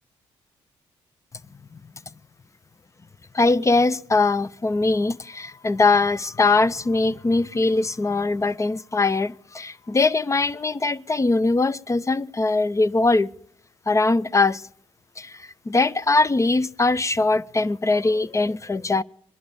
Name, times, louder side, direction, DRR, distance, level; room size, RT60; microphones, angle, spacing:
voice 1, 3.3-13.3 13.9-14.7 15.2-19.0, left 3 dB, 25° left, 0.6 m, -21 dB
21.5 x 11.5 x 5.2 m
supercardioid pair, 60°, 12 cm